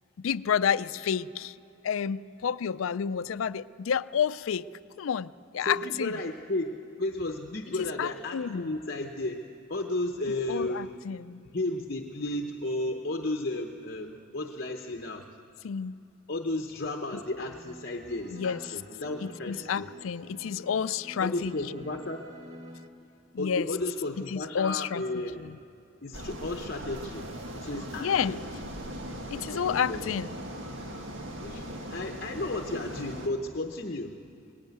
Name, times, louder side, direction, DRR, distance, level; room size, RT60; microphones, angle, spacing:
voice 1, 0.2-1.5 1.8-4.7 5.0-6.2 7.8-8.7 10.5-11.5 15.6-16.0 18.3-18.6 19.2-21.5 23.3-23.7 24.3-25.0 25.4-25.6 28.0-28.4 29.3-30.4, left 7 dB, 80° left, 17 dB, 0.4 m, -30 dB
voice 2, 5.6-9.4 9.7-11.0 11.5-15.3 16.3-19.9 21.2-22.2 23.4-25.5 26.0-27.3 27.6-28.4 29.3-30.2 31.4-34.2, left 2 dB, 50° left, 4 dB, 0.8 m, -33 dB
sound 1, 17.4-22.9, left 1 dB, 30° right, 1.5 m, -48 dB
sound 2, 26.1-33.3, equal, 70° right, 1.7 m, -39 dB
19.0 x 15.0 x 9.4 m, 2.5 s
head